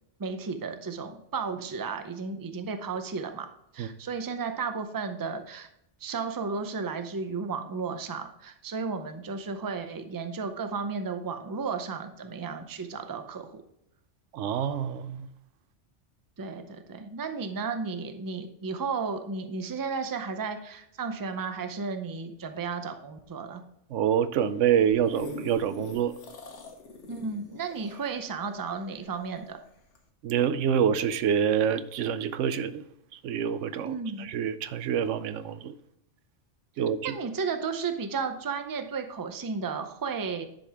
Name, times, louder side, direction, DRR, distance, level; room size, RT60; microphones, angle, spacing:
voice 1, 0.2-3.5 3.7-5.7 6.0-13.6 16.4-23.6 27.1-29.6 33.8-34.3 37.0-40.4, right 5 dB, 25° right, 0.5 m, -33 dB
voice 2, 14.3-15.3 23.9-26.1 30.2-32.8 33.2-35.7 36.8-37.1, right 8 dB, 90° right, 0.9 m, -26 dB
sound 1, 24.8-29.4 30.0-30.1, left 1 dB, 80° left, 1.4 m, -42 dB
10.5 x 5.1 x 3.5 m
omnidirectional pair, 1.2 m